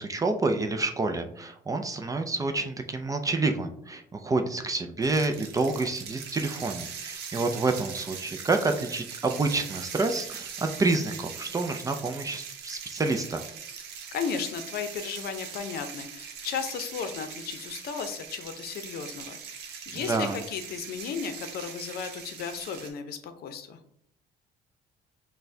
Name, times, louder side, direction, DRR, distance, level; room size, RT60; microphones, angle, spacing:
voice 1, 0.0-13.4 19.9-20.4, right 3 dB, 20° right, 5 dB, 0.4 m, -28 dB
sound 1, 5.0-22.9, right 7 dB, 80° right, 0.7 m, -41 dB
voice 2, 14.1-23.8, left 6 dB, 65° left, 8 dB, 0.6 m, -35 dB
6.1 x 2.2 x 2.7 m, 0.69 s
cardioid pair, 110°, 17 cm